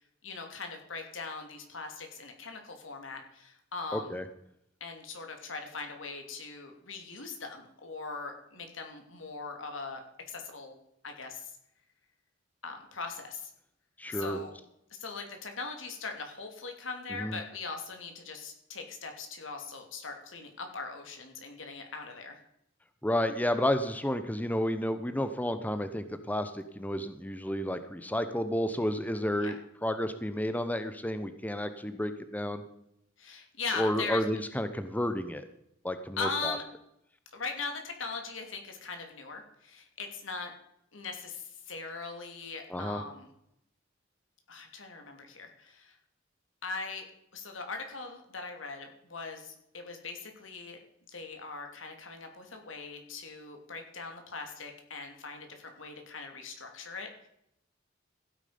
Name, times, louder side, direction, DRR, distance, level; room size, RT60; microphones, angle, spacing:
voice 1, 0.2-4.2 4.8-10.8 11.0-11.5 12.6-13.5 14.1-14.5 15.0-22.4 29.4-29.5 33.2-34.2 36.2-36.6 37.3-40.5 40.9-43.3 44.5-46.0 46.6-47.0 47.3-50.8 51.1-57.3, left 4 dB, 90° left, 4 dB, 2.9 m, -40 dB
voice 2, 3.9-4.2 14.0-14.4 17.2-17.4 23.0-32.6 33.8-35.5 35.8-36.6 42.7-43.0, left 1 dB, 10° left, 10 dB, 0.8 m, -31 dB
15.5 x 9.0 x 5.2 m, 0.77 s
head